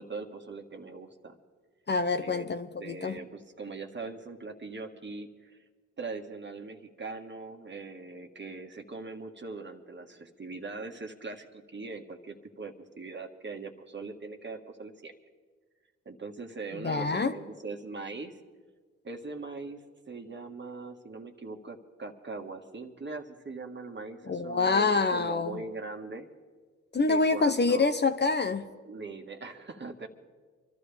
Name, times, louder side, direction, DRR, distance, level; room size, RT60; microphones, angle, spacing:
voice 1, 0.0-1.4 2.1-2.5 2.8-5.6 6.0-15.1 16.0-18.3 19.0-26.3 27.1-27.9 28.9-30.1, right 3 dB, 35° right, 4 dB, 1.7 m, -41 dB
voice 2, 1.9-3.2 16.8-17.3 24.3-25.6 26.9-28.7, left 4 dB, 35° left, 8 dB, 0.9 m, -26 dB
25.0 x 13.0 x 3.5 m, 1.5 s
supercardioid pair, 45°, 30 cm